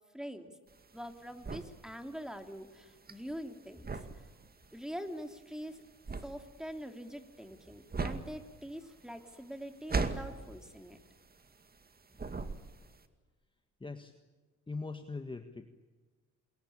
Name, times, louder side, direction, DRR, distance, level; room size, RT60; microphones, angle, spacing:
voice 1, 0.1-0.5 0.9-4.3 4.7-5.8 6.2-11.0 12.1-12.3, equal, ahead, 6 dB, 3.1 m, -44 dB
sound 1, 0.7-11.9 12.2-13.0, right 4 dB, 30° right, 2.3 m, -39 dB
voice 2, 13.8-14.1 14.7-15.7, left 3 dB, 15° left, 7 dB, 1.7 m, -41 dB
27.5 x 22.0 x 8.7 m, 1.3 s
cardioid pair, 90°, 30 cm